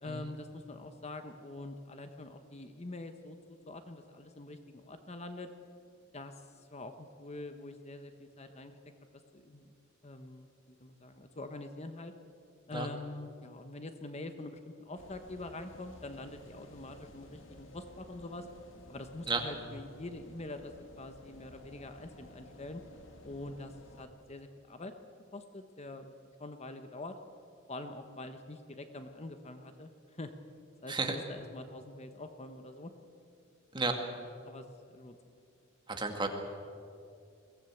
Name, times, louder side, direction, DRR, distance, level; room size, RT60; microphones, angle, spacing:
voice 1, 0.0-3.4 3.7-5.5 6.1-8.8 9.3-9.7 10.0-12.1 12.7-18.5 18.9-20.7 21.0-22.8 23.2-24.9 25.3-27.1 27.7-30.3 30.8-32.9 34.4-35.2, left 2 dB, 35° left, 7 dB, 1.1 m, -45 dB
sound 1, 15.0-24.1, left 1 dB, 70° left, 2.2 m, -54 dB
voice 2, 35.9-36.3, right 3 dB, 25° right, 4 dB, 2.0 m, -32 dB
22.5 x 17.0 x 8.0 m, 2.4 s
head